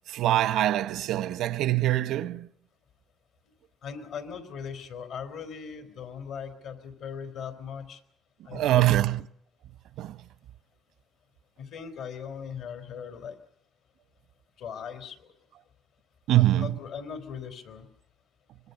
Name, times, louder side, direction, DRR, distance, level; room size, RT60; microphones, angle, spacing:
voice 1, 0.1-2.5 8.5-9.3 10.0-10.2 16.3-16.8, right 14 dB, 85° right, 0.9 m, -24 dB
voice 2, 3.8-8.0 8.4-9.1 11.6-13.4 14.6-15.3 16.3-17.9, left 7 dB, 80° left, 3.8 m, -39 dB
24.5 x 22.0 x 6.8 m
cardioid pair, 90°, 0 cm